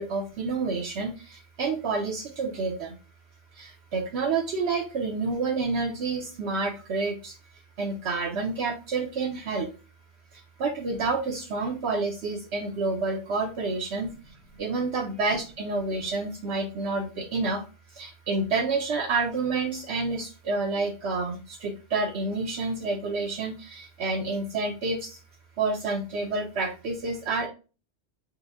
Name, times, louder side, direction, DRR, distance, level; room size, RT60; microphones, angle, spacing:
voice 1, 0.0-3.0 3.5-7.3 7.8-9.7 10.3-14.1 14.6-17.6 17.9-25.2 25.6-27.5, right 3 dB, 70° right, 2 dB, 0.8 m, -29 dB
4.8 x 2.1 x 2.3 m, 0.33 s
omnidirectional pair, 1.2 m